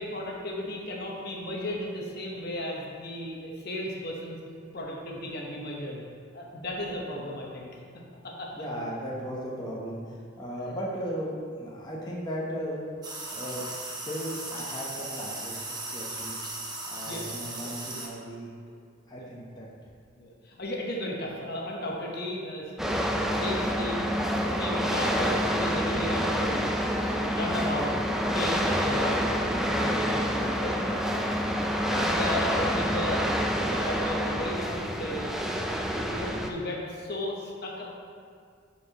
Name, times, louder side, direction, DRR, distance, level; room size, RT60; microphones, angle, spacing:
voice 1, 0.0-4.4 4.7-6.0 6.3-7.7 8.2-8.5 17.1-17.2 17.6-17.7 19.2-19.3 20.2-22.7 23.1-24.1 24.4-26.6 26.9-27.9 28.2-29.2 29.7-31.1 31.9-33.4 33.7-35.3 36.0-37.9, left 1 dB, 50° left, -2 dB, 1.0 m, -35 dB
voice 2, 8.5-11.3 11.6-12.8 13.3-13.7 14.0-16.4 16.8-18.5 19.1-19.9, equal, 20° left, -5 dB, 0.8 m, -36 dB
sound 1, 13.0-18.1, right 2 dB, 20° right, 0.9 m, -37 dB
sound 2, 22.8-36.5, equal, ahead, 0.4 m, -27 dB
11.5 x 4.5 x 2.9 m, 2.2 s
head